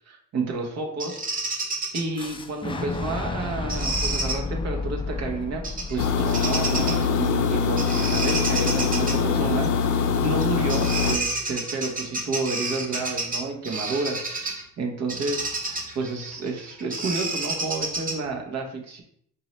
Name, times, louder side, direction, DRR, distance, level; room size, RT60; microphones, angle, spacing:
voice 1, 0.1-1.2 1.9-5.6 5.9-14.2 14.8-15.5 15.9-19.0, right 3 dB, 60° right, 2 dB, 0.9 m, -30 dB
Bird vocalization bird call bird song, 1.0-2.0 3.7-4.4 5.6-5.9 6.3-7.1 7.8-9.2 10.4-10.5 10.7-14.6 15.1-18.3, right 3 dB, 30° right, 0.9 m, -30 dB
Boom, 2.2-8.0, left 3 dB, 15° left, 0.4 m, -32 dB
sound 1, 6.0-11.2, left 6 dB, 80° left, 0.5 m, -23 dB
4.1 x 2.7 x 3.0 m, 0.67 s
cardioid pair, 90°, 30 cm